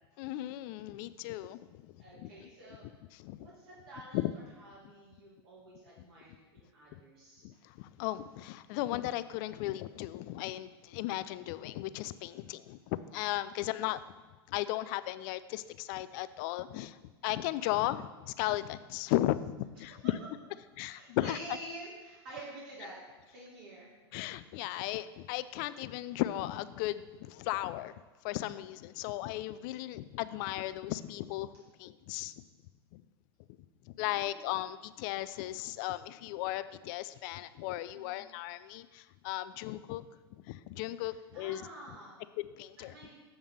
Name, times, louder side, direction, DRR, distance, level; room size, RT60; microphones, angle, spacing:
voice 1, 0.2-2.5 3.1-3.4 4.1-4.3 6.9-7.0 7.4-14.0 14.5-17.0 17.2-20.1 20.8-21.4 24.1-27.9 28.2-32.3 32.9-33.0 33.9-40.1 40.5-41.7 42.4-42.9, left 15 dB, 50° left, 15 dB, 0.4 m, -36 dB
voice 2, 2.0-2.9 3.4-7.4 13.6-13.8 20.9-23.0 23.3-23.9 34.0-34.7 37.9-38.3 41.0-42.2 42.9-43.2, right 1 dB, 65° right, -6 dB, 2.2 m, -49 dB
7.2 x 3.6 x 6.3 m, 1.2 s
hypercardioid pair, 115°, 14 cm